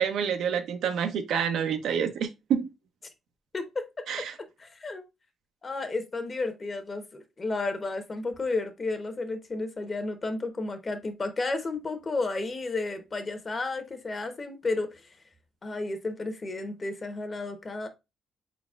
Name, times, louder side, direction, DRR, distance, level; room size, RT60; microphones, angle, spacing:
voice 1, 0.0-2.7 4.1-4.3, right 7 dB, 75° right, 0.6 m, -28 dB
voice 2, 3.5-4.3 4.6-5.0 5.6-15.0 15.6-17.9, left 3 dB, 35° left, 0.9 m, -32 dB
4.2 x 4.0 x 2.4 m
cardioid pair, 90°, 0 cm